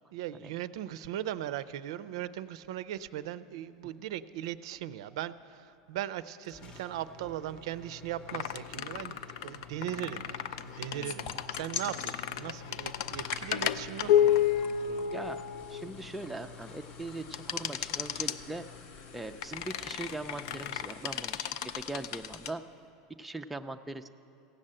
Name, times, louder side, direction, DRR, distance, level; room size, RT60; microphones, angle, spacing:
voice 1, 0.1-15.1, right 12 dB, 80° right, 15 dB, 0.4 m, -39 dB
sound 1, 6.4-21.4, left 6 dB, 30° left, 0.8 m, -50 dB
sound 2, 8.3-16.1 17.3-18.4 19.4-22.5, left 10 dB, 75° left, 0.4 m, -32 dB
sound 3, 11.0-12.2 12.8-22.5, left 5 dB, 55° left, 1.0 m, -46 dB
voice 2, 15.1-15.4 15.7-18.6 19.1-22.6 23.2-24.1, right 2 dB, 5° right, 6 dB, 0.3 m, -40 dB
16.0 x 6.5 x 8.7 m, 2.6 s
supercardioid pair, 150°, 3 cm